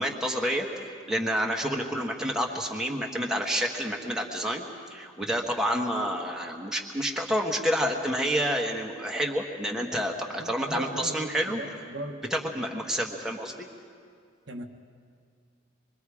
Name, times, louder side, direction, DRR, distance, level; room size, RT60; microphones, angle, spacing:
voice 1, 0.0-4.6 4.9-11.6 12.3-13.5, equal, 5° right, 0 dB, 1.3 m, -29 dB
voice 2, 10.4-12.2 14.5-14.6, right 1 dB, 70° right, 3 dB, 1.3 m, -38 dB
26.0 x 23.0 x 4.9 m, 2.2 s
head